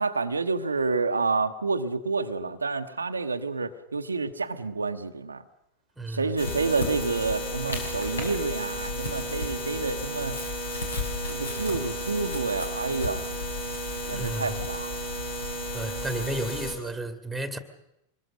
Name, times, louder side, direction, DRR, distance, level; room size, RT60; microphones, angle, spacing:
voice 1, 0.0-5.4 6.1-10.4 11.3-13.3 14.1-14.9 16.1-16.3, right 4 dB, 75° right, 1.0 m, -29 dB
voice 2, 6.0-6.3 14.0-14.5 15.7-17.6, right 2 dB, 5° right, 2.2 m, -33 dB
sound 1, 6.4-8.4 8.7-14.7, left 1 dB, 70° left, 5.1 m, -37 dB
sound 2, 6.4-16.7, equal, 55° left, 5.3 m, -33 dB
25.5 x 21.5 x 6.5 m
figure-of-eight pair, 90°, 0 cm